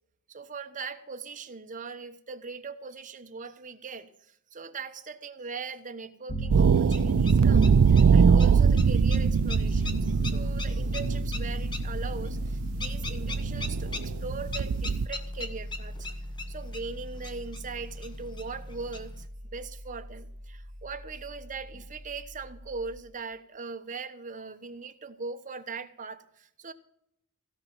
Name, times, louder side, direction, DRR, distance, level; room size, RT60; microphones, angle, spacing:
voice 1, 0.3-16.1 16.5-26.7, right 4 dB, 35° right, 8 dB, 1.1 m, -40 dB
Piano, 6.3-23.0, equal, 75° left, 3.4 m, -35 dB
sound 1, 6.5-15.1, right 6 dB, 75° right, 0.4 m, -23 dB
sound 2, 6.6-19.3, left 3 dB, 20° left, 1.2 m, -43 dB
16.0 x 5.9 x 8.8 m, 0.74 s
head